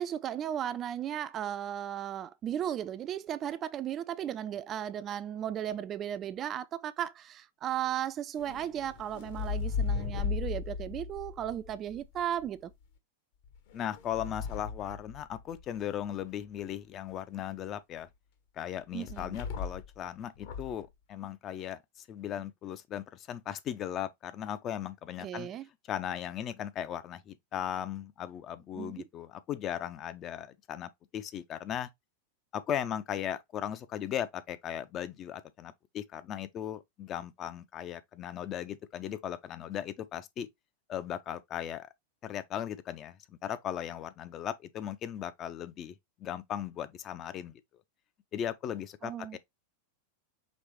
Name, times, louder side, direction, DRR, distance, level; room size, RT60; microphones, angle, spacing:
voice 1, 0.0-12.7 18.9-19.4 25.2-25.7 28.8-29.1 49.0-49.4, right 10 dB, 30° right, 0.3 m, -35 dB
sound 1, 8.4-12.5 13.4-15.8 19.1-20.0 20.4-20.8, left 5 dB, 50° left, 1.0 m, -36 dB
voice 2, 13.7-18.1 18.5-25.5 25.9-31.9 32.5-40.5 40.9-41.9 42.2-47.6 48.3-49.4, left 10 dB, 30° left, 0.5 m, -37 dB
5.2 x 3.2 x 3.0 m
figure-of-eight pair, 90°, 0 cm